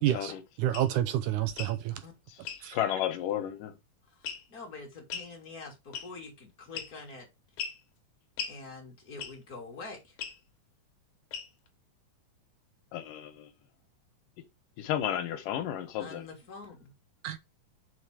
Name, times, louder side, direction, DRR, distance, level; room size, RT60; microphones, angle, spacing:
voice 1, 0.0-0.3 0.6-2.0 2.6-2.8 17.2-17.4, right 12 dB, 80° right, 2.0 m, -29 dB
sound 1, 0.7-0.9 1.5-1.8 2.4-2.6 4.2-4.6 5.1-5.3 5.9-6.3 6.7-7.1 7.6-7.8 8.4-8.6 9.2-9.5 10.2-10.4 11.3-11.7, left 7 dB, 65° left, 2.5 m, -38 dB
voice 2, 2.7-3.7 12.9-13.5 14.8-16.2, left 11 dB, 85° left, 2.6 m, -32 dB
voice 3, 4.2-7.3 8.5-10.2 16.0-16.9, left 3 dB, 30° left, 2.2 m, -45 dB
5.7 x 4.8 x 4.9 m
omnidirectional pair, 3.8 m